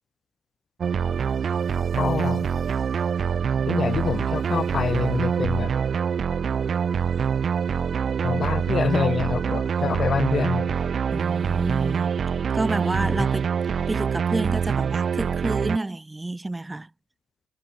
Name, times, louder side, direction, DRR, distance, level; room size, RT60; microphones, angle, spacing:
sound 1, 0.8-15.8, right 7 dB, 50° right, 0.3 m, -25 dB
voice 1, 2.0-2.4 3.7-5.7 8.2-10.7 13.0-13.3, left 6 dB, 45° left, 0.9 m, -26 dB
voice 2, 11.1-12.2 12.5-13.5 13.9-16.9, right 2 dB, 15° right, 1.6 m, -29 dB
cardioid pair, 90°, 0 cm